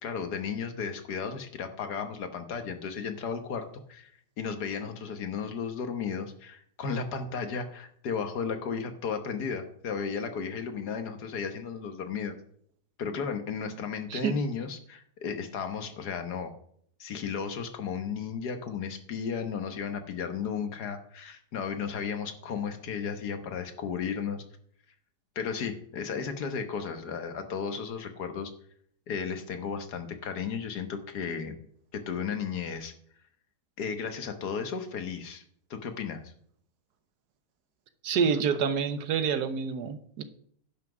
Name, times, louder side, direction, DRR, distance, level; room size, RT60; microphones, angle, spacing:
voice 1, 0.0-4.1 4.4-12.3 13.0-16.5 17.0-24.4 25.3-28.5 29.1-31.6 31.9-32.9 33.8-35.4 35.7-36.3, left 6 dB, 70° left, 7 dB, 1.6 m, -34 dB
voice 2, 38.0-40.2, right 6 dB, 70° right, 11 dB, 1.4 m, -27 dB
10.5 x 5.8 x 6.1 m, 0.64 s
omnidirectional pair, 1.8 m